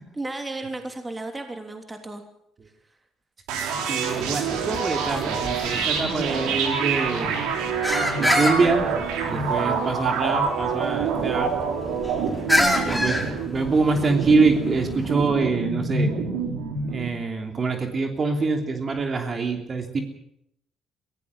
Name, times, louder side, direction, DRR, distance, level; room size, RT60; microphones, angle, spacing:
voice 1, 0.1-2.2 12.5-13.0, right 2 dB, 20° right, 5 dB, 3.0 m, -33 dB
sound 1, 3.5-17.1, right 5 dB, 85° right, 3.8 m, -26 dB
voice 2, 3.9-7.4 8.2-9.0 9.3-11.5 12.8-16.1 16.9-20.0, right 3 dB, 40° right, 5 dB, 3.2 m, -25 dB
sound 2, 4.5-15.1, left 1 dB, ahead, 4.8 m, -29 dB
22.5 x 16.5 x 7.3 m, 0.76 s
supercardioid pair, 75°, 0 cm